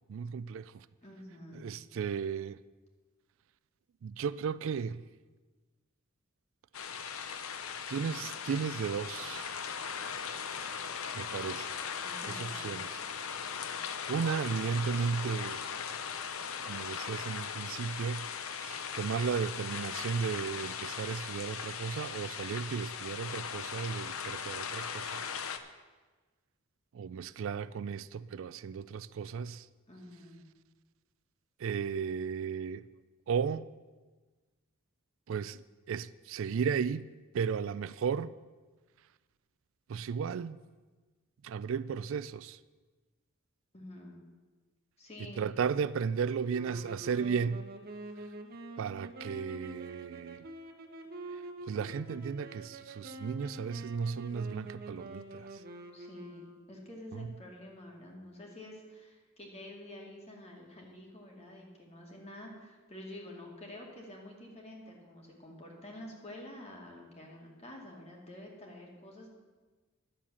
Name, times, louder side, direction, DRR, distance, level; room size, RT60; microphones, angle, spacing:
voice 1, 0.1-0.9 1.5-2.6 4.0-5.0 7.9-9.5 11.1-11.7 12.3-12.9 14.1-15.6 16.7-18.3 18.5-25.2 26.9-29.7 31.6-32.8 33.3-33.7 35.3-35.6 35.9-37.0 37.3-38.3 39.9-40.6 41.4-42.6 45.4-47.6 48.8-50.5 51.3-51.4 51.7-55.6 57.1-57.3, right 6 dB, 65° right, 0.3 m, -34 dB
voice 2, 1.0-1.7 12.0-12.8 29.9-30.4 43.7-44.2 45.0-45.4 55.9-69.3, left 1 dB, 30° left, 2.4 m, -48 dB
sound 1, 6.7-25.6, left 7 dB, 90° left, 0.8 m, -39 dB
sound 2, 46.5-56.9, right 2 dB, 45° right, 1.2 m, -46 dB
11.0 x 7.4 x 7.1 m
head